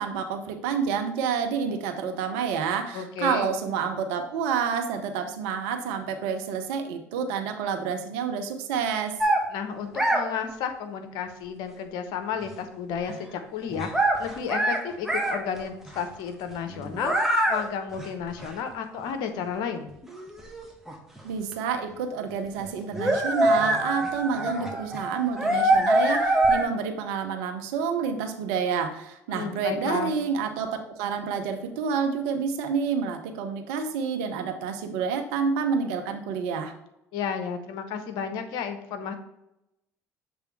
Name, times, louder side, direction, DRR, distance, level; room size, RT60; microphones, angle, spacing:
voice 1, 0.0-9.2 21.2-36.7, right 6 dB, 75° right, 6 dB, 0.8 m, -29 dB
voice 2, 2.9-3.5 9.5-19.9 29.3-30.1 37.1-39.1, left 7 dB, 65° left, 7 dB, 0.9 m, -32 dB
sound 1, 9.2-9.4 9.9-10.2 13.1-13.2 13.7-14.8 15.1-15.4 15.9-16.0 16.7-17.6 17.9-18.0 18.4-18.5 19.5-19.6 20.0-21.2 21.5-21.6 22.6-22.7 22.9-26.6, right 1 dB, 5° right, 1.5 m, -24 dB
7.1 x 3.4 x 4.5 m, 0.85 s
hypercardioid pair, 65°, 8 cm